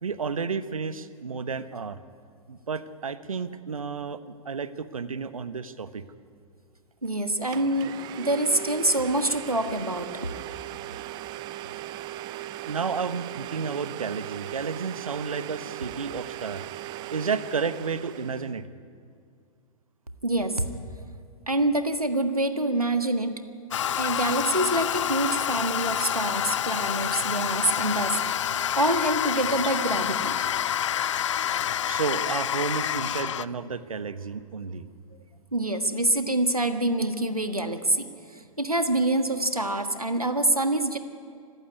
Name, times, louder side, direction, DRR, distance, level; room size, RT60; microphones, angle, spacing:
voice 1, 0.0-2.0 2.5-6.0 12.7-16.6 17.1-18.6 31.8-34.9, right 5 dB, 70° right, 13 dB, 1.2 m, -31 dB
Domestic sounds home sounds, 7.0-7.1 7.5-18.6, right 14 dB, 25° right, 0.6 m, -38 dB
voice 2, 7.0-10.4 20.2-20.6 21.5-23.3 24.0-28.2 28.8-30.4 35.5-41.0, right 1 dB, 90° right, 8 dB, 1.5 m, -26 dB
Toilet flush, 23.7-33.5, left 10 dB, 55° left, 0.6 m, -28 dB
25.5 x 15.0 x 9.7 m, 2.2 s
figure-of-eight pair, 105°, 18 cm